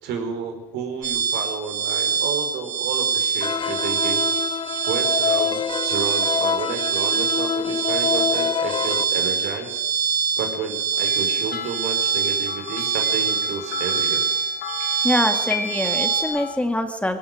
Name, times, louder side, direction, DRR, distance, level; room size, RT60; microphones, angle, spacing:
voice 1, 0.0-4.2 4.9-9.8 10.4-14.2, right 5 dB, 80° right, 5 dB, 4.7 m, -31 dB
sound 1, 1.0-16.2, right 5 dB, 50° right, 6.8 m, -24 dB
sound 2, 3.4-9.0, left 7 dB, 30° left, 0.8 m, -26 dB
sound 3, 11.0-16.6, left 9 dB, 75° left, 3.0 m, -35 dB
voice 2, 15.0-17.2, left 1 dB, 5° left, 6 dB, 2.1 m, -24 dB
20.5 x 17.5 x 7.7 m, 1.0 s
cardioid pair, 110°, 17 cm